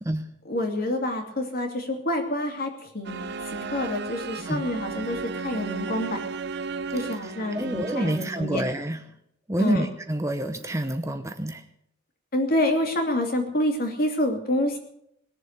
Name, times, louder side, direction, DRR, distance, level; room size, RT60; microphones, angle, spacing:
voice 1, 0.5-6.2 6.9-8.6 9.6-9.9 12.3-14.8, left 1 dB, 50° left, 3 dB, 2.8 m, -27 dB
sound 1, 3.0-8.5, right 4 dB, 60° right, 0.8 m, -34 dB
voice 2, 7.0-9.0 9.5-11.6, right 1 dB, 15° right, 7 dB, 0.8 m, -28 dB
20.5 x 7.4 x 8.1 m, 0.74 s
head